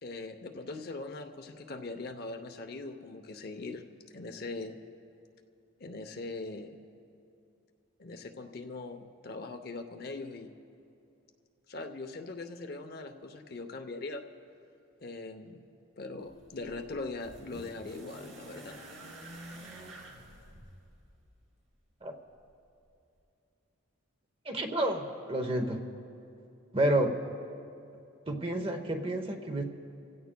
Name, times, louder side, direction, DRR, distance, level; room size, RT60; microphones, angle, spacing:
voice 1, 0.0-3.8 4.1-4.8 5.8-6.8 8.0-10.6 11.7-14.2 15.0-15.6 16.0-18.8, left 3 dB, 45° left, 6 dB, 0.7 m, -41 dB
sound 1, 16.2-21.4 22.5-22.6, right 1 dB, 70° right, 2.6 m, -49 dB
voice 2, 24.4-25.8 26.7-27.2 28.3-29.6, right 1 dB, 25° right, 5 dB, 0.9 m, -30 dB
27.0 x 16.0 x 2.2 m, 2.6 s
head